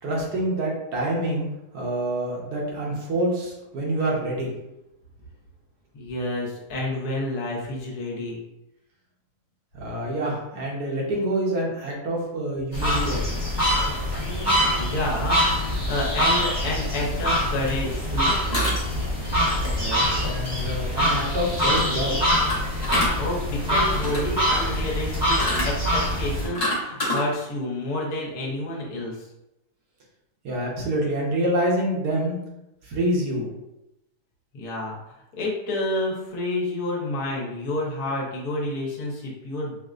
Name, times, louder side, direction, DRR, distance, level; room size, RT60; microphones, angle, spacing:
voice 1, 0.0-1.5 1.7-4.5 9.7-13.4 19.7-22.2 30.4-32.4 32.8-33.5, right 1 dB, 70° right, -2 dB, 1.5 m, -27 dB
voice 2, 5.9-8.4 14.1-18.3 23.2-29.3 34.5-39.8, left 1 dB, 65° left, -3 dB, 1.4 m, -29 dB
sound 1, 12.7-26.5, equal, 20° right, 0.8 m, -24 dB
sound 2, 18.5-19.2 22.5-23.1 23.8-24.3 25.4-25.7 26.3-27.2, left 1 dB, 40° left, 0.5 m, -26 dB
5.1 x 2.1 x 2.4 m, 0.88 s
omnidirectional pair, 1.8 m